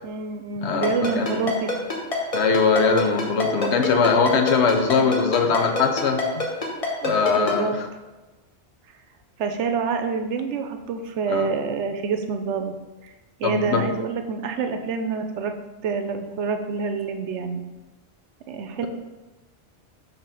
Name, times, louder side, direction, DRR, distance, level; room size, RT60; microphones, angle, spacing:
voice 1, 0.0-1.8 7.0-7.8 9.4-12.7 13.0-13.1 13.4-15.5 15.8-17.6 18.5-18.9, right 5 dB, 80° right, 7 dB, 1.0 m, -27 dB
voice 2, 0.6-1.5 2.3-6.5 7.0-7.8 11.3-11.5 13.4-13.9, left 5 dB, 70° left, 6 dB, 1.0 m, -21 dB
Ringtone, 0.8-7.5, left 2 dB, 30° left, 1.2 m, -26 dB
5.1 x 4.2 x 6.0 m, 1.2 s
omnidirectional pair, 1.2 m